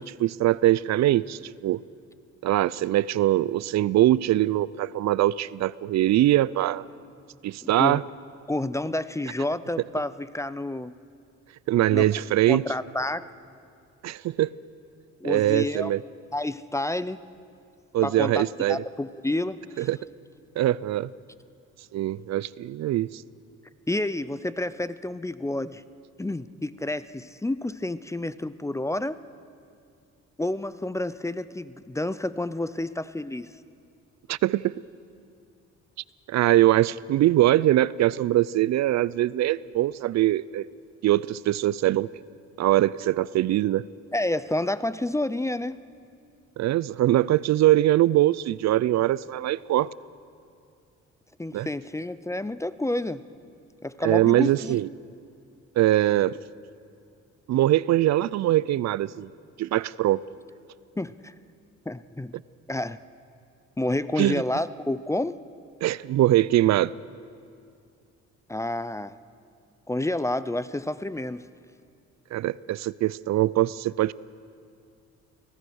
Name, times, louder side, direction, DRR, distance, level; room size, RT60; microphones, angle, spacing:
voice 1, 0.0-1.8 2.4-6.8 7.4-8.0 11.7-12.6 14.0-14.5 15.2-16.0 17.9-18.8 19.8-20.0 20.6-21.1 21.9-23.2 34.3-34.7 36.3-40.7 41.0-42.1 42.6-43.8 46.6-49.9 51.5-51.7 54.0-54.9 55.8-56.4 57.5-59.3 59.6-60.2 64.2-64.4 65.8-66.9 72.3-74.1, right 14 dB, 65° right, 20 dB, 0.5 m, -22 dB
voice 2, 7.6-8.0 8.5-10.9 11.9-12.1 12.5-13.3 15.2-15.9 16.3-17.2 18.0-19.9 23.9-25.8 26.2-29.2 30.4-33.5 44.1-45.8 51.4-53.2 53.8-54.8 61.0-61.3 61.9-62.4 62.7-63.0 63.8-65.4 68.5-69.2 69.9-71.5, left 1 dB, 10° left, 16 dB, 0.5 m, -29 dB
25.0 x 17.0 x 6.4 m, 2.4 s
cardioid pair, 90°, 30 cm